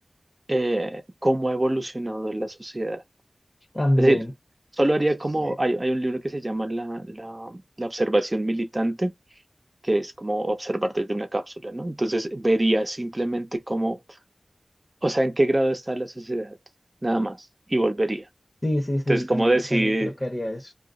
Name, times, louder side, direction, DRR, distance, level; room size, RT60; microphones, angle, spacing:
voice 1, 0.5-3.0 4.0-4.2 4.8-9.1 9.8-14.0 15.0-16.6 17.0-17.4 17.7-18.3 19.1-20.1, right 1 dB, 30° right, 0.7 m, -25 dB
voice 2, 3.7-4.3 5.4-5.5 18.6-20.7, left 1 dB, 30° left, 0.7 m, -26 dB
2.4 x 2.0 x 3.6 m
wide cardioid pair, 55°, 0 cm